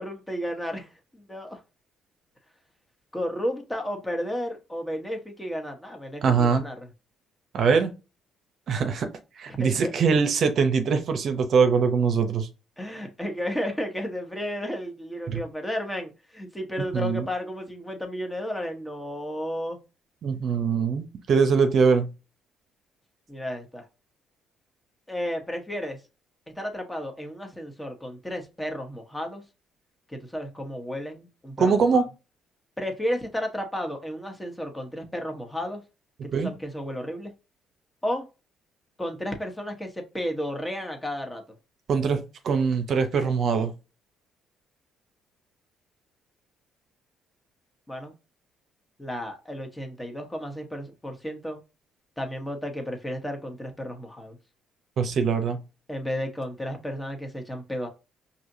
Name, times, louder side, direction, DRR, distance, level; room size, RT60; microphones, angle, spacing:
voice 1, 0.0-1.6 3.1-6.9 9.6-9.9 12.8-19.8 23.3-23.9 25.1-26.0 26.6-29.4 30.1-32.0 32.8-35.8 36.4-37.3 38.0-38.2 39.0-41.4 47.9-48.1 49.0-51.6 52.2-54.4 55.9-57.9, equal, 10° left, 1.1 m, -33 dB
voice 2, 6.2-6.6 7.5-7.9 8.7-9.1 9.4-12.5 15.3-15.4 16.9-17.3 20.2-22.1 31.6-32.0 36.3-36.5 41.9-43.7 55.0-55.6, right 5 dB, 60° right, 0.7 m, -22 dB
4.8 x 2.8 x 2.7 m
supercardioid pair, 65°, 0 cm